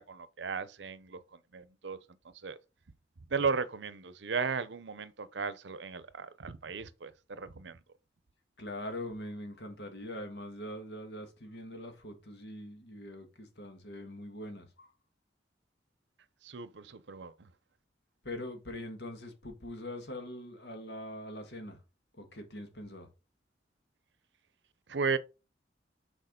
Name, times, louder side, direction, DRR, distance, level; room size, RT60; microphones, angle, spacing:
voice 1, 0.0-2.0 2.4-2.6 3.3-7.8 16.4-17.5 24.9-25.2, right 5 dB, 75° right, 0.7 m, -35 dB
voice 2, 8.6-14.9 18.2-21.8 22.1-23.1, left 1 dB, 65° left, 1.8 m, -43 dB
6.6 x 4.9 x 3.8 m
head